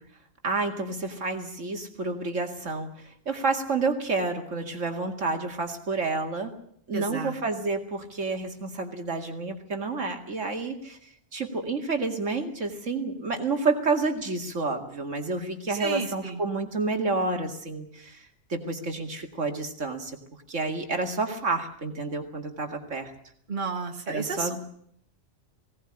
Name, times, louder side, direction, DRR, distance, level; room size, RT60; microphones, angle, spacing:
voice 1, 0.4-6.5 6.9-11.0 11.3-20.2 20.5-23.1 24.1-24.6, right 3 dB, 70° right, 4 dB, 2.5 m, -29 dB
voice 2, 6.9-7.3 15.7-16.4 23.5-24.6, right 3 dB, 40° right, 3 dB, 2.1 m, -32 dB
20.0 x 18.0 x 9.9 m, 0.68 s
omnidirectional pair, 1.3 m